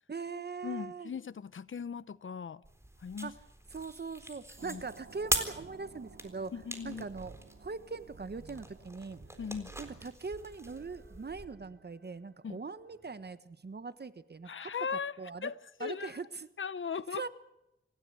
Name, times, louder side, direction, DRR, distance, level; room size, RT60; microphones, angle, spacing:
voice 1, 0.1-1.1 3.2-3.3 3.7-6.5 6.8-9.2 9.8-15.5 15.8-16.5 17.1-17.3, right 4 dB, 50° right, 1.3 m, -41 dB
voice 2, 0.6-2.6 3.0-3.3 4.6-4.8 6.5-7.0 9.4-9.7 12.4-12.6 14.4-16.1 16.6-17.3, left 6 dB, 70° left, 0.9 m, -38 dB
sound 1, 2.6-11.5, right 1 dB, 10° right, 4.0 m, -41 dB
sound 2, 4.6-13.4, right 4 dB, 65° right, 2.9 m, -55 dB
26.5 x 16.0 x 8.3 m
wide cardioid pair, 70°, 21 cm